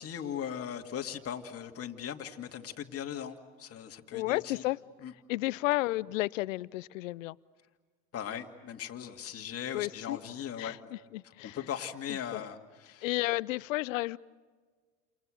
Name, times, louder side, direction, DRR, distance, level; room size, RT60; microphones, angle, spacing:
voice 1, 0.0-4.6 5.0-5.1 8.1-10.9 11.4-13.1, left 9 dB, 35° left, 4 dB, 2.4 m, -39 dB
voice 2, 4.1-4.8 5.3-7.4 9.7-10.2 10.6-11.6 12.1-12.4 13.0-14.2, left 19 dB, 75° left, 21 dB, 0.7 m, -32 dB
29.5 x 28.5 x 6.6 m, 1.5 s
hypercardioid pair, 85°, 39 cm